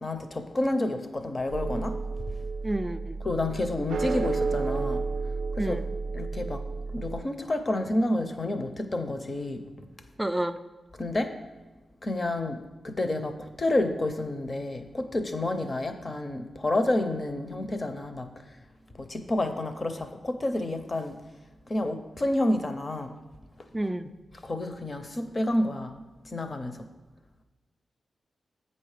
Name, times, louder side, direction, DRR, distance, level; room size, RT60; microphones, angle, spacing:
voice 1, 0.0-2.0 3.2-5.0 5.6-5.8 6.1-6.6 6.9-9.6 11.0-11.3 12.0-18.5 18.9-21.2 21.7-23.2 24.4-26.0 26.2-26.9, left 1 dB, 30° left, 8 dB, 0.6 m, -29 dB
sound 1, 1.5-7.2, right 4 dB, 85° right, 0.4 m, -31 dB
voice 2, 2.6-3.2 5.6-5.9 10.2-10.6 23.7-24.1, right 1 dB, 10° right, 10 dB, 0.3 m, -30 dB
8.4 x 5.5 x 4.9 m, 1.2 s
wide cardioid pair, 130°, 0 cm